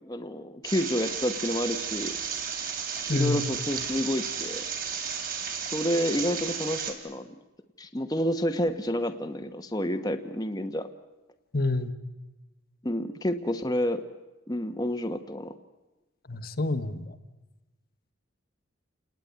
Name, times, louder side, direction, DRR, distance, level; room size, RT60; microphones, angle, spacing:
voice 1, 0.0-2.2 3.1-4.6 5.6-7.3 7.8-10.9 12.8-14.0 14.5-15.6, equal, 20° left, 6 dB, 1.1 m, -29 dB
sound 1, 0.6-6.9, right 7 dB, 45° right, 4.0 m, -33 dB
voice 2, 3.1-3.4 11.5-11.9 16.3-17.1, left 2 dB, 45° left, 10 dB, 1.3 m, -27 dB
29.5 x 19.0 x 9.5 m, 1.1 s
head